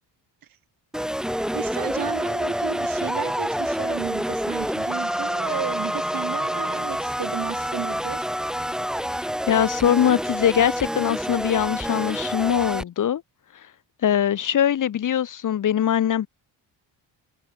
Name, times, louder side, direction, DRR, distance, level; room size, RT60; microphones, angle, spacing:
sound 1, 0.9-12.8, equal, ahead, 2.1 m, -27 dB
voice 1, 1.5-8.3, right 10 dB, 50° right, 2.4 m, -33 dB
voice 2, 9.5-13.2 14.0-16.3, left 10 dB, 45° left, 1.2 m, -22 dB
cardioid pair, 140°, 43 cm